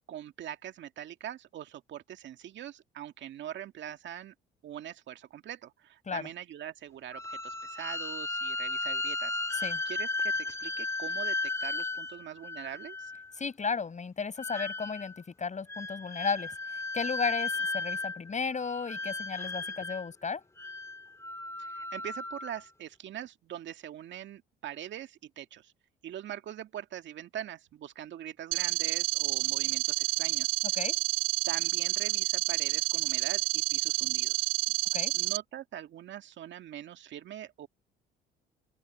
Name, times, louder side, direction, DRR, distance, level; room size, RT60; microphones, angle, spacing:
voice 1, 0.1-4.3 4.6-9.4 9.9-13.1 21.6-25.7 26.0-30.5 31.5-34.5 35.1-37.7, right 11 dB, 60° right, 2.0 m, -43 dB
sound 1, 7.1-13.3 14.4-15.2 15.7-18.3 18.6-20.1 20.6-22.6, left 3 dB, 15° left, 2.6 m, -35 dB
voice 2, 13.4-16.5 16.9-20.4 30.7-31.0 34.9-35.1, left 5 dB, 35° left, 6.3 m, -34 dB
sound 2, 28.5-35.4, right 21 dB, 80° right, 0.8 m, -29 dB
open air
hypercardioid pair, 60°, 21 cm